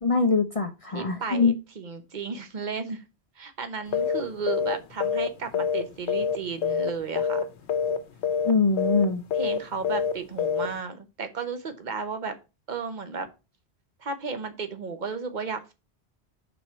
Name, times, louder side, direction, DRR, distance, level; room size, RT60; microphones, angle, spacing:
voice 1, 0.0-1.6 8.4-9.2, left 4 dB, 40° left, 0.6 m, -23 dB
voice 2, 0.9-3.0 3.4-7.4 9.3-12.3 12.7-13.3 14.0-15.7, right 5 dB, 45° right, 1.0 m, -34 dB
sound 1, 3.9-4.2 4.5-4.7 5.0-6.4 6.6-6.9 7.1-7.4 7.7-8.0 8.2-8.5 8.8-9.0 9.3-9.6 9.8-10.1 10.4-10.7, left 7 dB, 85° left, 1.1 m, -25 dB
5.2 x 4.3 x 6.0 m
omnidirectional pair, 1.1 m